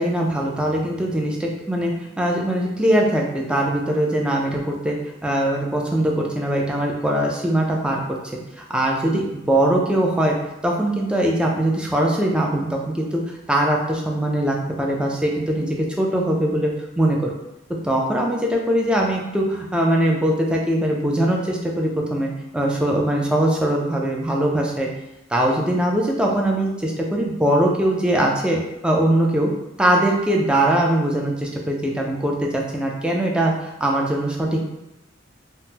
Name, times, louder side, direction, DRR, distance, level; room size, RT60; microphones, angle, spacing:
voice 1, 0.0-5.0 5.2-8.0 8.7-10.4 10.6-13.2 13.5-16.7 17.0-17.3 17.8-24.9 25.3-29.5 29.8-34.6, right 1 dB, 5° right, -1 dB, 0.3 m, -21 dB
3.4 x 2.0 x 2.8 m, 0.93 s
head